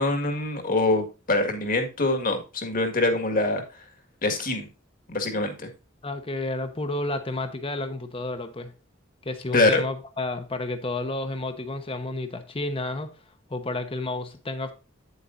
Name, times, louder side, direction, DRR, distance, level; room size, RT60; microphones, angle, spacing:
voice 1, 0.0-3.6 4.2-4.7 5.1-5.7 9.5-9.8, left 2 dB, 45° left, 1.9 m, -24 dB
voice 2, 6.0-8.7 9.2-13.1 13.5-14.7, left 2 dB, 30° left, 1.0 m, -31 dB
9.0 x 8.1 x 2.6 m
head